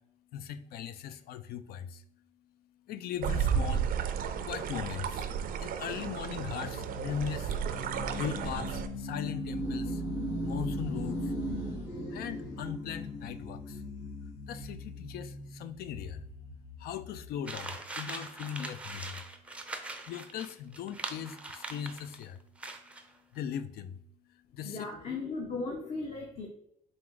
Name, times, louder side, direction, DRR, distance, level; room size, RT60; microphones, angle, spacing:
voice 1, 0.3-2.0 2.9-5.3 5.6-10.0 10.4-11.3 12.1-13.8 14.5-16.3 16.8-19.3 20.1-22.4 23.3-24.0 24.3-24.9, left 8 dB, 65° left, 12 dB, 0.4 m, -39 dB
sound 1, 3.2-17.3, equal, 80° left, 1.5 m, -39 dB
sound 2, 3.2-8.9, right 7 dB, 60° right, 0.5 m, -33 dB
sound 3, 17.5-22.2 22.6-23.1, right 2 dB, 5° right, 0.5 m, -42 dB
voice 2, 24.6-26.5, left 3 dB, 35° left, 0 dB, 0.7 m, -37 dB
4.5 x 2.5 x 3.7 m, 0.73 s
cardioid pair, 110°, 17 cm